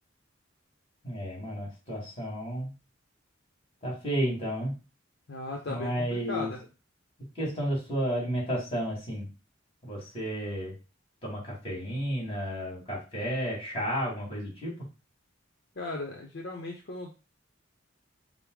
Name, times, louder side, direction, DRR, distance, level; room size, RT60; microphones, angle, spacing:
voice 1, 1.0-2.7 3.8-4.7 5.7-6.5 7.3-9.3 9.8-10.8 11.2-14.7, equal, 30° left, -3 dB, 2.5 m, -32 dB
voice 2, 5.3-6.6 15.8-17.2, left 2 dB, 60° left, 1 dB, 0.7 m, -37 dB
5.3 x 2.0 x 4.7 m, 0.30 s
head